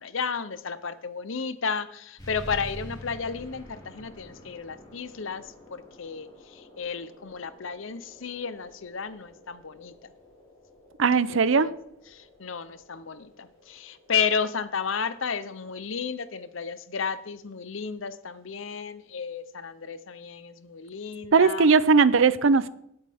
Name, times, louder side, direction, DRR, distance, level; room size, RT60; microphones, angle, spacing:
voice 1, 0.0-10.1 11.1-11.7 12.1-21.7, left 6 dB, 70° left, 0.8 m, -33 dB
sound 1, 2.2-17.3, left 1 dB, 20° left, 3.9 m, -48 dB
voice 2, 11.0-11.7 21.3-22.7, right 5 dB, 70° right, 0.6 m, -19 dB
19.0 x 8.0 x 3.6 m
head